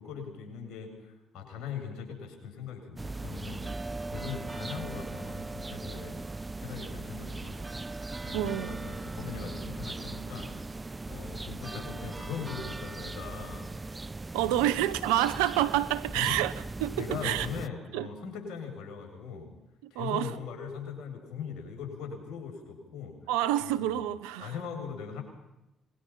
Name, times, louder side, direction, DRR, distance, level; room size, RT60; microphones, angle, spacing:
voice 1, 0.0-6.2 6.6-7.8 8.2-13.7 14.6-14.7 16.1-16.3 17.0-19.5 19.9-23.3 23.6-23.7 24.4-25.2, left 6 dB, 70° left, 7.8 m, -40 dB
sound 1, 3.0-17.7, right 3 dB, 25° right, 0.7 m, -39 dB
voice 2, 8.3-8.8 14.3-16.5 16.8-17.5 17.9-18.1 19.8-20.3 23.3-24.5, right 13 dB, 85° right, 1.1 m, -28 dB
26.5 x 22.0 x 5.9 m
hypercardioid pair, 50°, 0 cm